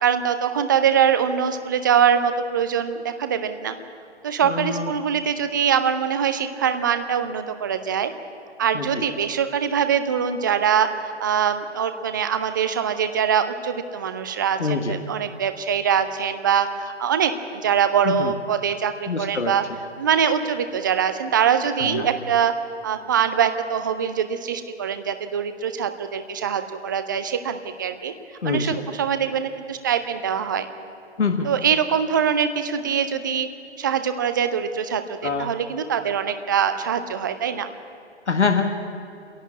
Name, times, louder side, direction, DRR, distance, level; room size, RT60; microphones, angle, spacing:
voice 1, 0.0-3.8 4.2-8.1 8.6-19.6 20.0-22.5 22.8-28.1 28.4-30.7 31.4-33.5 33.8-37.7, right 8 dB, 15° right, 9 dB, 0.5 m, -23 dB
voice 2, 4.4-4.9 8.7-9.0 14.6-15.0 18.0-18.3 19.1-19.5 21.8-22.1 28.4-28.8 31.2-31.5 35.2-35.5 38.3-38.8, left 4 dB, 70° left, 4 dB, 1.7 m, -24 dB
28.5 x 11.0 x 8.5 m, 2.5 s
figure-of-eight pair, 135°, 35 cm